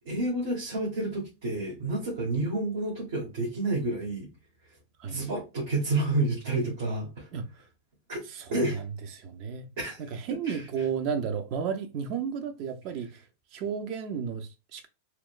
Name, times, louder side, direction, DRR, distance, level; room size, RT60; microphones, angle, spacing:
voice 1, 0.0-4.3 5.1-7.3 8.1-8.2 8.5-8.8 9.8-10.0 10.4-10.6, right 2 dB, 70° right, 1.1 m, -29 dB
voice 2, 8.3-8.8 9.1-9.7 10.1-13.2 13.5-14.9, right 7 dB, 50° right, 0.5 m, -33 dB
2.9 x 2.1 x 2.4 m
hypercardioid pair, 115°, 0 cm